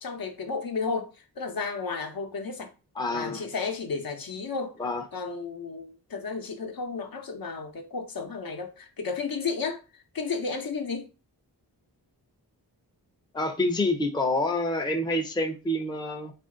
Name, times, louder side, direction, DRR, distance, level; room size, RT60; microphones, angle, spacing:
voice 1, 0.0-2.7 3.1-4.8 5.1-9.8 10.1-11.1, left 4 dB, 55° left, 0.8 m, -33 dB
voice 2, 3.0-3.5 4.8-5.0 13.3-16.3, left 1 dB, 10° left, 0.5 m, -27 dB
3.1 x 2.6 x 3.7 m
wide cardioid pair, 65°, 41 cm